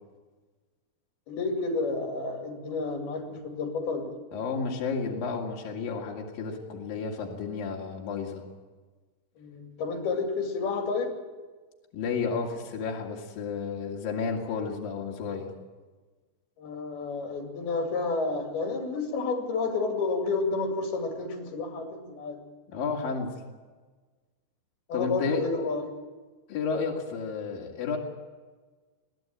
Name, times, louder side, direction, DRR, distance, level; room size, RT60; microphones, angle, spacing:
voice 1, 1.3-4.1 9.4-11.2 16.6-22.4 24.9-25.8, left 3 dB, 85° left, 3 dB, 4.5 m, -30 dB
voice 2, 4.3-8.4 11.9-15.5 22.7-23.3 24.9-25.5 26.5-28.0, left 5 dB, 70° left, -1 dB, 3.9 m, -31 dB
21.5 x 15.5 x 8.9 m, 1.3 s
omnidirectional pair, 4.3 m